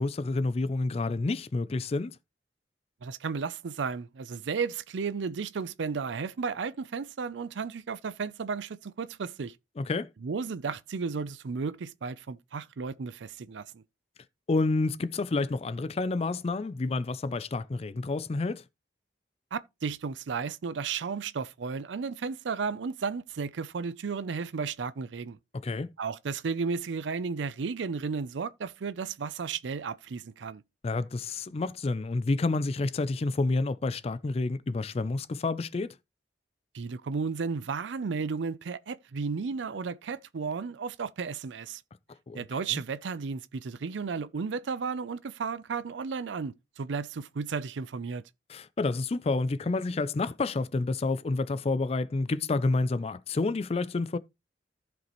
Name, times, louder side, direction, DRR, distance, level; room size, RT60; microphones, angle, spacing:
voice 1, 0.0-2.2 9.8-10.1 14.5-18.6 25.5-25.9 30.8-36.0 42.3-42.4 42.7-42.8 48.5-54.2, left 3 dB, 35° left, 0.4 m, -29 dB
voice 2, 3.0-9.6 10.2-13.8 19.5-25.4 26.0-30.6 36.7-41.8 42.3-48.2, right 5 dB, 80° right, 0.5 m, -33 dB
14.5 x 5.2 x 3.0 m
head